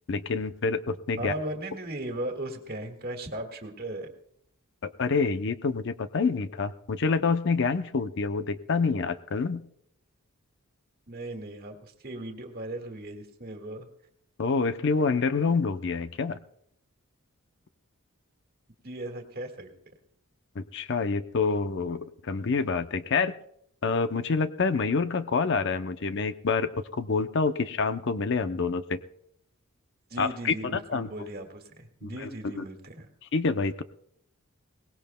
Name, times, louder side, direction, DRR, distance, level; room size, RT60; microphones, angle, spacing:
voice 1, 0.1-1.3 4.8-9.6 14.4-16.4 20.6-23.3 23.8-29.0 30.2-31.1 32.0-32.3 32.5-32.6 33.3-33.8, left 4 dB, 55° left, 11 dB, 0.6 m, -27 dB
voice 2, 1.2-4.1 11.1-13.9 18.8-19.7 30.1-33.1, right 1 dB, 45° right, 5 dB, 1.8 m, -37 dB
22.5 x 18.5 x 2.2 m, 0.70 s
head